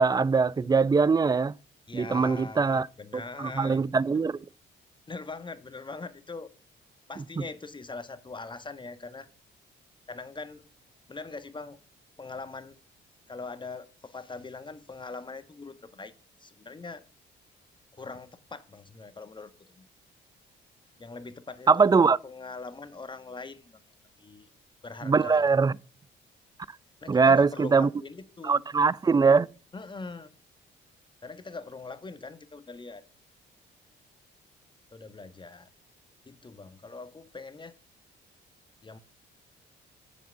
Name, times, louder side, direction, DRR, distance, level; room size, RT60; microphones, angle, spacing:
voice 1, 0.0-1.5 1.9-2.9 3.1-4.4 7.4-7.5 21.7-22.2 25.0-25.7 27.1-27.9 28.4-29.5, right 5 dB, 20° right, 0.4 m, -22 dB
voice 2, 1.9-3.8 5.1-6.5 7.1-9.3 10.1-10.6 11.1-11.8 12.2-12.8 13.3-16.1 16.4-17.0 17.9-19.9 21.0-21.9 22.2-23.8 24.2-24.5 24.8-25.4 27.0-28.6 29.7-30.3 31.2-33.0 34.9-35.7 36.2-37.8 38.8-39.0, left 3 dB, 25° left, 1.2 m, -42 dB
7.8 x 7.4 x 7.9 m
cardioid pair, 90°, 20 cm